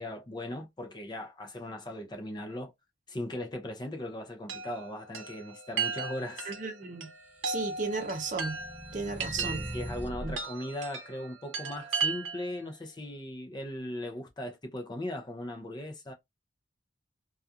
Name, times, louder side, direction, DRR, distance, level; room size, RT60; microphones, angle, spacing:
voice 1, 0.0-2.7 3.1-6.5 9.4-16.1, left 1 dB, 20° left, 0.5 m, -38 dB
Chime, 4.5-12.6, right 5 dB, 85° right, 0.7 m, -36 dB
voice 2, 6.5-7.1 7.4-8.6 8.9-9.6 10.2-10.3, right 4 dB, 40° right, 0.6 m, -34 dB
sound 1, 7.4-10.4, equal, 10° right, 0.8 m, -41 dB
2.3 x 2.3 x 2.7 m
head